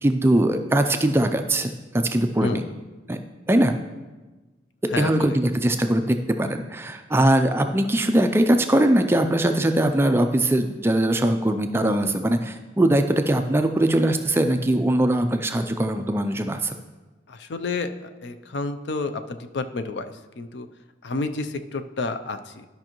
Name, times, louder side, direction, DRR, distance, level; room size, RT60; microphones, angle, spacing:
voice 1, 0.0-2.6 3.1-3.2 3.5-3.8 5.0-16.7, right 1 dB, 15° right, 7 dB, 0.3 m, -21 dB
voice 2, 2.4-2.7 4.9-5.4 17.3-20.7 21.0-22.7, left 3 dB, 70° left, 9 dB, 0.5 m, -30 dB
12.0 x 5.3 x 3.0 m, 1.2 s
head